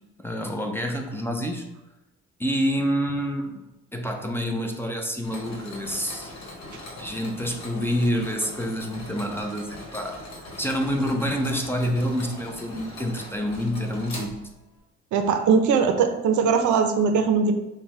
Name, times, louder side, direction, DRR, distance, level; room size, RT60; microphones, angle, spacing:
voice 1, 0.2-1.7 2.4-3.6 3.9-6.3 7.0-10.2 10.6-14.3, equal, 10° left, 2 dB, 0.5 m, -27 dB
Mechanisms, 5.2-14.8, left 1 dB, 60° left, 1.2 m, -41 dB
voice 2, 15.1-17.5, right 5 dB, 75° right, 7 dB, 0.5 m, -20 dB
5.3 x 2.2 x 3.0 m, 0.98 s
cardioid pair, 90°, 30 cm